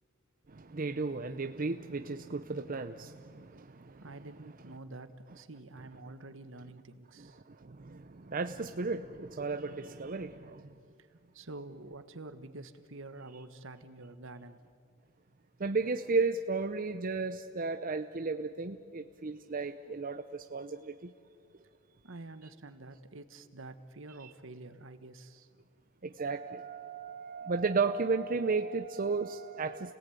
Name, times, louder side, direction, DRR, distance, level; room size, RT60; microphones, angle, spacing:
voice 1, 0.5-4.0 7.2-10.7 15.6-21.1 24.2-24.3 26.0-29.9, right 4 dB, 45° right, 7 dB, 0.7 m, -34 dB
voice 2, 4.0-7.4 11.3-14.7 22.0-25.5, right 2 dB, 65° right, 11 dB, 1.4 m, -48 dB
30.0 x 18.0 x 9.3 m, 2.3 s
head